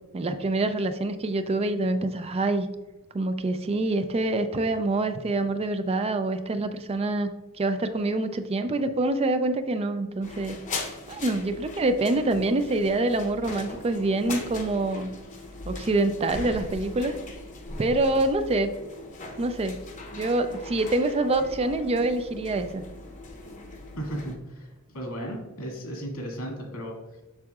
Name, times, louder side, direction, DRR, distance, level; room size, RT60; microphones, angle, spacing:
voice 1, 0.1-2.7 3.1-7.3 7.6-10.6 11.1-15.1 15.7-17.2 17.8-18.7 19.4-19.8 20.1-22.8, right 2 dB, 30° right, 9 dB, 0.4 m, -26 dB
sound 1, 10.2-24.4, left 3 dB, 35° left, 0.8 m, -40 dB
voice 2, 24.0-26.9, equal, 85° left, 0 dB, 2.2 m, -35 dB
7.3 x 6.2 x 2.4 m, 1.1 s
head